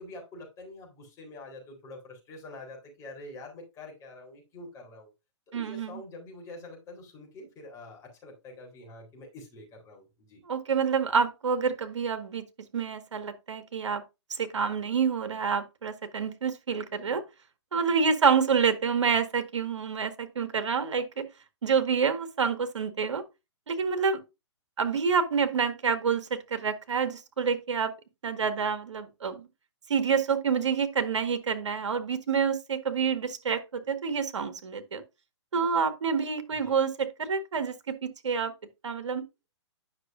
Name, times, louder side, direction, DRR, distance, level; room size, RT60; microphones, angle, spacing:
voice 1, 0.0-5.1 5.5-10.4 36.6-36.8, left 2 dB, 20° left, 3.8 m, -46 dB
voice 2, 5.5-6.0 10.5-12.4 12.7-14.0 14.3-17.2 17.7-21.3 21.6-23.2 23.7-24.2 24.8-27.9 28.2-29.5 29.9-35.0 35.5-38.5 38.8-39.2, right 6 dB, 80° right, 1.7 m, -28 dB
9.9 x 6.4 x 2.6 m
hypercardioid pair, 140°, 15 cm